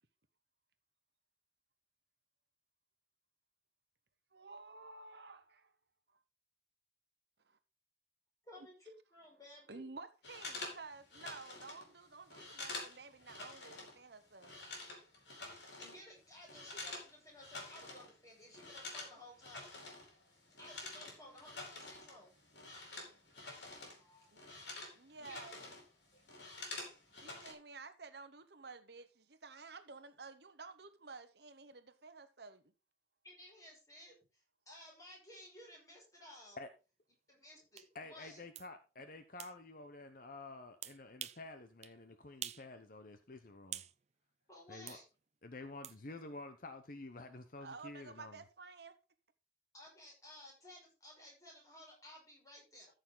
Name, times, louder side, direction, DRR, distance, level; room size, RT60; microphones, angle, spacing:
voice 1, 4.3-5.7 6.1-6.2 7.5-7.6 9.7-14.5 24.3-24.4 24.9-25.7 27.2-32.6 47.6-49.0, right 4 dB, 60° right, 1.1 m, -52 dB
voice 2, 8.4-9.9 15.7-19.8 20.6-22.3 23.7-24.3 25.2-25.8 26.1-26.2 26.5-26.6 33.2-36.6 37.3-38.4 44.5-45.0 49.7-52.9, left 1 dB, 20° left, 5.7 m, -56 dB
sound 1, 10.2-14.0 14.2-17.1 17.4-18.1 18.4-24.0 24.3-25.8 26.1-27.5, left 2 dB, 65° left, 4.5 m, -48 dB
sound 2, 37.8-37.9 38.5-38.7 39.4-39.5 40.8-41.4 41.8-42.0 42.4-42.7 43.0-43.9 44.9-45.0 45.8-46.0, right 11 dB, 35° right, 0.5 m, -46 dB
voice 3, 37.9-43.8 44.7-45.0 45.4-48.4, left 2 dB, 45° left, 0.9 m, -50 dB
14.0 x 6.5 x 3.9 m
head